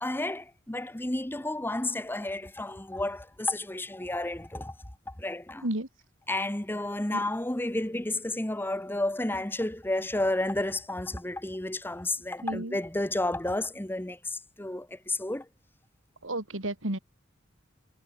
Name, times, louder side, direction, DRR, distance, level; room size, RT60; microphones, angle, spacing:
voice 1, 0.0-4.7 5.1-5.6 6.3-15.5, left 1 dB, 10° left, 1.0 m, -31 dB
voice 2, 12.4-12.8 16.2-17.0, right 1 dB, 90° right, 3.7 m, -32 dB
head